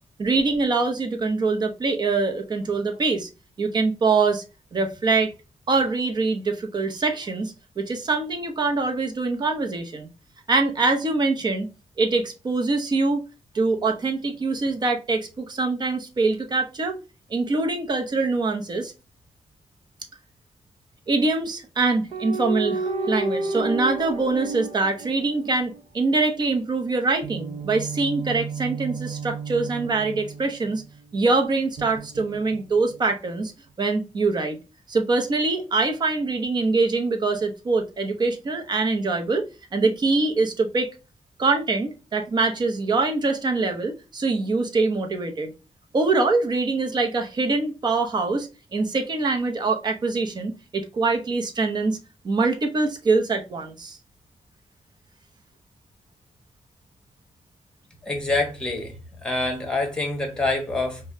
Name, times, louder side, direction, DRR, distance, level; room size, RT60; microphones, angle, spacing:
voice 1, 0.2-3.3 3.6-4.4 4.7-5.3 5.7-10.1 10.5-11.7 12.0-13.2 13.5-17.0 17.3-18.9 21.1-30.8 31.1-33.5 33.8-34.6 34.9-39.4 39.7-40.9 41.4-45.5 45.9-52.0 52.2-54.0, right 3 dB, 40° right, 0.7 m, -24 dB
sound 1, 22.1-25.8 27.2-31.0 31.8-33.0, right 3 dB, 90° right, 0.7 m, -31 dB
voice 2, 58.0-58.9 59.2-61.0, left 2 dB, 5° left, 1.1 m, -26 dB
5.3 x 2.2 x 2.6 m
wide cardioid pair, 170°, 12 cm